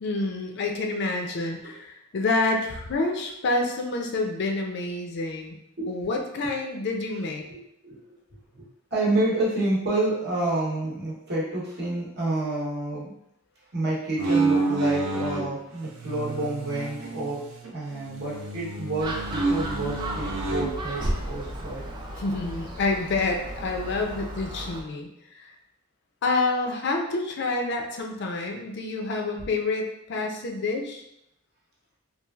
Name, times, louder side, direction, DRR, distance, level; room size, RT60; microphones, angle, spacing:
voice 1, 0.0-5.6 5.9-7.4 22.2-25.1 25.3-25.5 26.2-31.0, left 3 dB, 55° left, 2 dB, 0.4 m, -28 dB
voice 2, 7.5-8.0 8.5-8.6 8.9-13.1 13.7-17.4 17.7-21.8, right 2 dB, 55° right, -6 dB, 0.9 m, -29 dB
sound 1, 14.2-15.5 16.0-17.7 18.0-20.7, right 3 dB, 75° right, 0.6 m, -28 dB
Gull seagull, 19.0-24.8, equal, 20° right, 0.3 m, -34 dB
3.1 x 2.3 x 2.3 m, 0.79 s
head